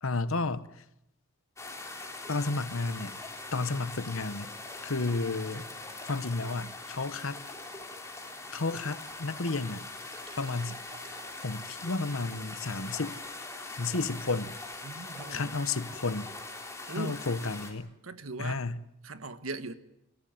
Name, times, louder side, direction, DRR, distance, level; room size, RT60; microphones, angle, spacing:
voice 1, 0.0-0.7 2.3-3.1 3.5-4.5 4.8-5.7 6.1-7.4 8.5-9.9 10.4-10.8 11.4-13.2 13.7-14.6 15.3-16.3 17.0-17.9 18.4-18.8, left 3 dB, 70° left, 1.1 m, -32 dB
sound 1, 1.6-17.7, left 2 dB, 15° left, 3.4 m, -42 dB
sound 2, 9.1-9.2 9.5-9.6 10.0-13.6 14.0-14.1 14.7-14.8, right 4 dB, 20° right, 3.3 m, -56 dB
voice 2, 14.8-15.6 16.9-17.3 18.0-18.6 19.0-19.7, right 2 dB, 70° right, 1.5 m, -39 dB
28.5 x 15.5 x 9.5 m
head